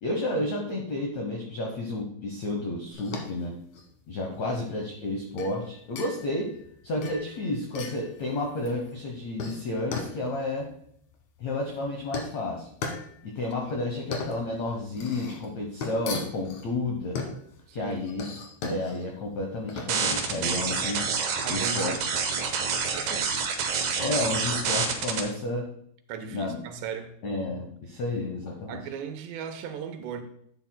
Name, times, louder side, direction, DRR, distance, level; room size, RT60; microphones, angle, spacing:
voice 1, 0.0-3.6 4.1-6.5 6.8-10.7 11.4-12.7 13.2-17.2 17.7-18.3 18.7-21.0 21.5-21.9 24.0-25.7 26.3-26.6 27.2-28.8, left 2 dB, 80° left, 1 dB, 1.5 m, -31 dB
sound 1, 2.9-21.7, left 4 dB, 60° left, 2.1 m, -39 dB
voice 2, 4.3-4.6 17.7-18.0 21.4-22.0 23.0-23.3 26.1-27.1 28.7-30.2, right 7 dB, 85° right, 7 dB, 3.1 m, -37 dB
sound 2, 19.9-25.2, right 5 dB, 70° right, 1.8 m, -27 dB
11.5 x 9.1 x 2.2 m, 0.67 s
omnidirectional pair, 4.8 m